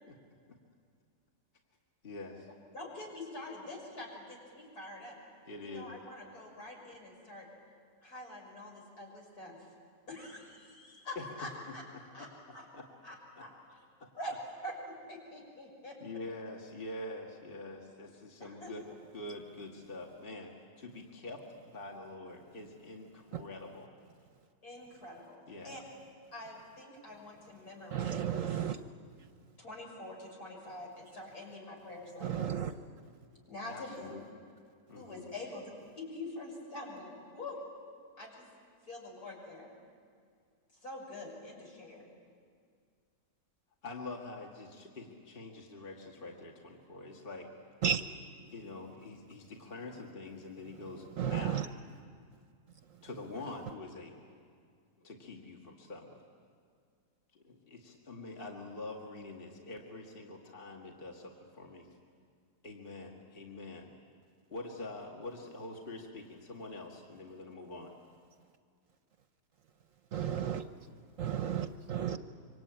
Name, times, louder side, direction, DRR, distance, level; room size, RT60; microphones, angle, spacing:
voice 1, 2.0-2.5 5.5-5.9 11.2-11.3 11.9-12.3 12.7-12.8 13.4-13.5 14.0-14.1 16.0-18.8 19.1-23.9 25.5-25.8 33.7-34.2 34.9-35.2 43.8-47.5 48.4-51.6 53.0-54.3 55.0-56.2 57.3-61.9 62.6-63.9 64.5-67.9, left 2 dB, 35° left, 0 dB, 2.3 m, -45 dB
voice 2, 2.7-5.2 5.6-7.5 8.0-9.6 10.1-11.8 12.1-12.7 13.0-13.5 13.8-13.9 14.2-14.4 14.6-16.0 18.4-18.7 24.6-25.8 26.3-28.5 29.6-32.5 33.5-34.1 35.0-37.6 38.2-38.5 38.9-39.7 40.8-42.1, left 1 dB, 65° left, -2 dB, 6.8 m, -45 dB
voice 3, 27.9-28.8 32.2-32.7 47.8-48.0 51.2-51.7 70.1-70.6 71.2-72.2, right 9 dB, 60° right, 9 dB, 1.1 m, -33 dB
26.0 x 24.5 x 9.0 m, 2.2 s
omnidirectional pair, 1.7 m